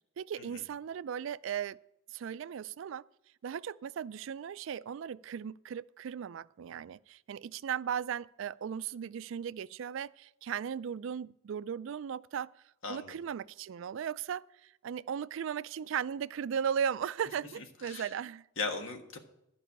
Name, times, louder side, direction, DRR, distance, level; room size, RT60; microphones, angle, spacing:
voice 1, 0.2-1.8 2.1-3.1 3.4-12.5 12.9-18.4, right 8 dB, 65° right, 0.3 m, -37 dB
voice 2, 12.8-13.2 17.6-18.1 18.6-19.2, left 4 dB, 70° left, 1.5 m, -38 dB
12.5 x 5.5 x 8.5 m
head